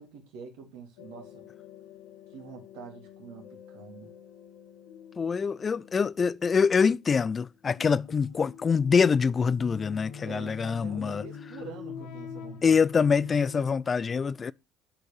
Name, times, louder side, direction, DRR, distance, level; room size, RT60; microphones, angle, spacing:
voice 1, 0.0-1.5 2.3-4.1 10.2-13.1, right 5 dB, 75° right, 2.6 m, -46 dB
sound 1, 1.0-13.7, left 7 dB, 70° left, 1.2 m, -46 dB
voice 2, 5.2-11.2 12.6-14.5, left 5 dB, 35° left, 0.4 m, -25 dB
11.5 x 5.1 x 4.7 m
hypercardioid pair, 60°, 0 cm